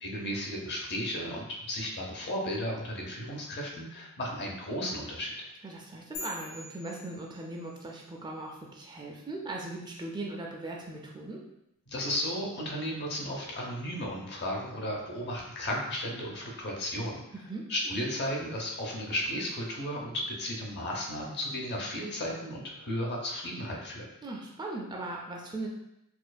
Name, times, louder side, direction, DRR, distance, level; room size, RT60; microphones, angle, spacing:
voice 1, 0.0-5.4 11.9-17.2 17.7-24.1, equal, 50° left, -1 dB, 0.8 m, -34 dB
voice 2, 5.6-11.4 17.3-17.7 24.2-25.7, right 2 dB, 20° right, -1 dB, 0.4 m, -39 dB
sound 1, 6.1-7.9, left 2 dB, 80° left, 0.9 m, -43 dB
4.3 x 2.5 x 2.2 m, 0.84 s
head